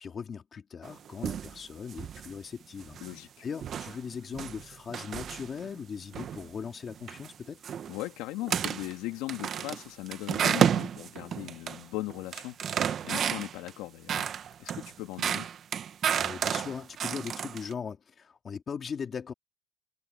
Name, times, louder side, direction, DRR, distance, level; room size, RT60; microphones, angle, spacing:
voice 1, 0.0-3.0 3.4-7.6 16.2-19.3, left 6 dB, 20° left, 2.1 m, -39 dB
sound 1, 0.8-1.6 1.9-2.3 2.8-3.2 3.6-5.8 6.1-6.5 6.9-7.3 7.6-8.0 8.4-8.9 9.3-11.8 12.1-13.7 14.1-17.7, right 8 dB, 25° right, 0.8 m, -31 dB
voice 2, 3.0-3.5 7.9-14.3 14.6-15.5, left 17 dB, 55° left, 2.3 m, -38 dB
cardioid pair, 175°, 0 cm